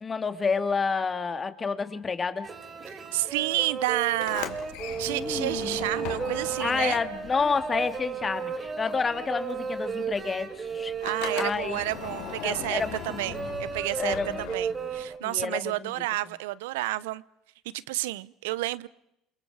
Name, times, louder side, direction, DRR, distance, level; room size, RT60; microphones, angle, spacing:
voice 1, 0.0-2.5 5.1-5.8 6.6-10.9 11.3-11.8 12.4-13.3 14.0-14.4 15.2-15.9, left 5 dB, 25° left, 2.3 m, -29 dB
sound 1, 2.4-15.2, right 5 dB, 30° right, 3.1 m, -34 dB
voice 2, 2.9-4.6 5.0-7.0 11.0-17.2 17.7-18.9, right 17 dB, 90° right, 0.8 m, -30 dB
Sliding door, 4.1-8.4 8.6-15.0, left 10 dB, 75° left, 2.8 m, -40 dB
29.0 x 28.0 x 4.8 m
supercardioid pair, 95°, 0 cm